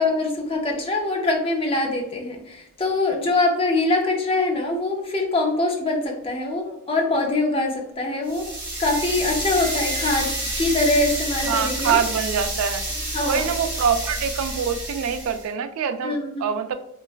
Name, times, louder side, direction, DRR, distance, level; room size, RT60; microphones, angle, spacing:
voice 1, 0.0-8.5 8.8-12.0 13.1-13.5 16.0-16.5, left 2 dB, 25° left, 2 dB, 0.4 m, -23 dB
sound 1, 8.3-15.5, right 1 dB, 20° right, 1.0 m, -29 dB
voice 2, 11.5-12.8 13.2-16.7, right 7 dB, 80° right, 10 dB, 0.3 m, -25 dB
2.9 x 2.4 x 2.3 m, 0.75 s
head